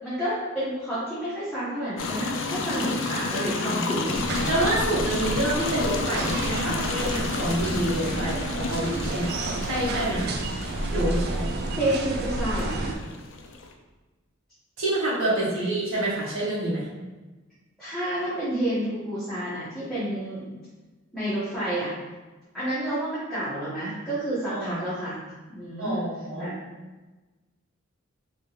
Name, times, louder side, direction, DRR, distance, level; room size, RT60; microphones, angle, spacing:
voice 1, 0.0-4.2 11.7-12.9 15.5-15.7 17.8-20.5 21.1-21.9 22.5-25.2 25.5-26.0 26.4-26.5, right 1 dB, ahead, -12 dB, 0.8 m, -29 dB
sound 1, 2.0-13.7, left 3 dB, 65° left, 0.4 m, -32 dB
voice 2, 3.6-4.1 4.4-9.3 9.6-10.4 10.9-11.5 14.8-16.9 24.5-24.9 25.8-26.5, right 1 dB, 80° right, -7 dB, 1.3 m, -27 dB
sound 2, 4.1-12.9, right 2 dB, 50° right, 0.4 m, -30 dB
3.3 x 2.8 x 2.7 m, 1.2 s
head